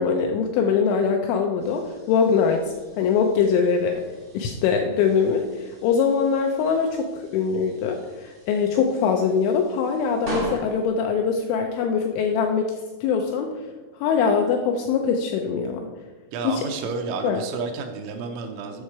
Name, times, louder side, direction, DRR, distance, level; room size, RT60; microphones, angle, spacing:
voice 1, 0.0-4.0 4.3-12.8 13.0-13.5 14.0-15.9 16.4-16.6 17.2-17.4, left 6 dB, 85° left, 3 dB, 2.7 m, -22 dB
sound 1, 1.6-12.5, right 1 dB, 45° right, 0.8 m, -41 dB
voice 2, 16.3-18.8, right 4 dB, 80° right, 4 dB, 3.0 m, -31 dB
8.8 x 6.4 x 4.7 m, 1.2 s
omnidirectional pair, 6.0 m